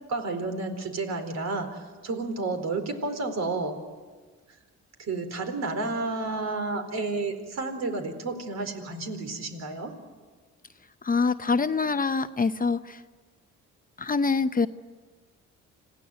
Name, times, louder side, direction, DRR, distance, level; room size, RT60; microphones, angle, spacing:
voice 1, 0.1-3.8 5.0-10.0, right 3 dB, 60° right, 6 dB, 4.3 m, -31 dB
voice 2, 11.0-13.0 14.0-14.7, left 4 dB, 30° left, 11 dB, 0.8 m, -25 dB
26.5 x 17.0 x 9.4 m, 1.4 s
cardioid pair, 90°, 30 cm